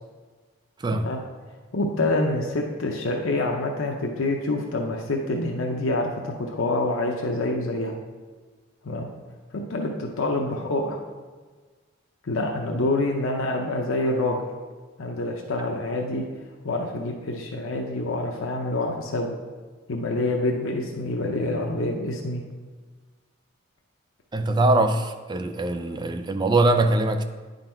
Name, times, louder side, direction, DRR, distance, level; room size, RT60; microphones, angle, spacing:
voice 1, 1.7-7.9 8.8-9.1 9.5-11.0 12.2-14.4 15.0-16.2 16.6-19.3 19.9-22.4, left 2 dB, 85° left, 1 dB, 0.7 m, -26 dB
voice 2, 24.3-27.2, right 2 dB, 20° right, 7 dB, 0.3 m, -22 dB
9.7 x 3.9 x 4.4 m, 1.4 s
head